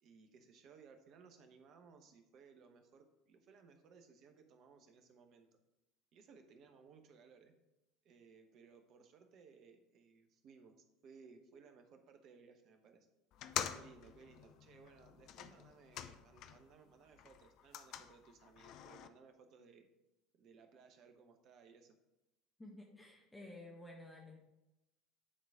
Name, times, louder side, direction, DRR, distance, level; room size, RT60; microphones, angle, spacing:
voice 1, 0.0-5.6 6.1-7.5 8.0-10.8 11.0-13.1 13.7-19.9 20.3-22.0, right 5 dB, 50° right, 6 dB, 1.0 m, -61 dB
sound 1, 13.3-16.8 17.1-19.1, left 10 dB, 50° left, 0.5 m, -46 dB
voice 2, 22.6-24.4, left 2 dB, 10° left, -2 dB, 1.6 m, -53 dB
9.8 x 4.0 x 4.9 m, 0.95 s
figure-of-eight pair, 65°, 0 cm